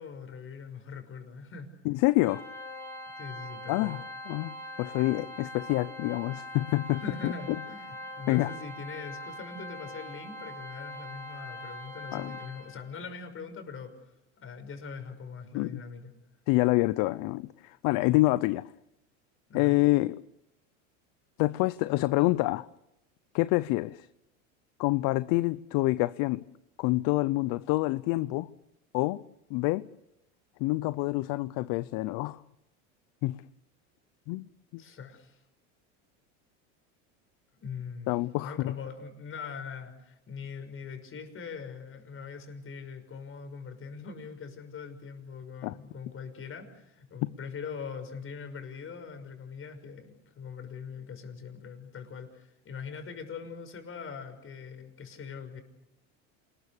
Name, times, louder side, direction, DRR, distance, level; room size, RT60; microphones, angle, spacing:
voice 1, 0.0-1.7 3.2-4.0 7.0-13.9 14.4-16.1 19.5-19.8 34.8-35.4 37.6-38.1 38.4-55.6, left 5 dB, 35° left, 6.0 m, -42 dB
voice 2, 1.8-2.4 3.7-7.3 8.3-8.5 12.1-12.3 15.5-15.8 16.5-18.6 19.5-20.2 21.4-22.7 23.3-24.1 24.8-26.4 26.8-28.5 28.9-29.2 29.5-29.9 30.6-32.4 33.2-33.4 34.3-34.5 34.7-34.8 38.1-38.7 45.6-45.8, left 20 dB, 55° left, 0.8 m, -27 dB
Organ, 2.2-13.0, left 1 dB, 5° left, 5.8 m, -42 dB
27.5 x 21.0 x 6.8 m
supercardioid pair, 105°, 39 cm